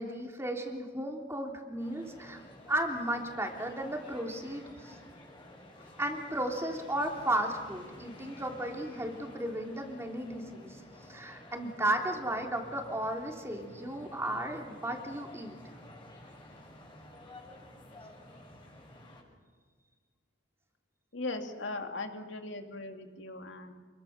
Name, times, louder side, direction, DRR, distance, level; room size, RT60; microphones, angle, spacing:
voice 1, 0.0-2.4 2.7-5.0 5.8-10.8 11.1-15.6, right 1 dB, 15° right, 2 dB, 3.2 m, -34 dB
sound 1, 1.8-19.2, left 1 dB, 25° left, 6.9 m, -52 dB
voice 2, 21.1-23.7, left 2 dB, 75° left, 5 dB, 2.6 m, -39 dB
28.5 x 22.0 x 6.7 m, 1.5 s
head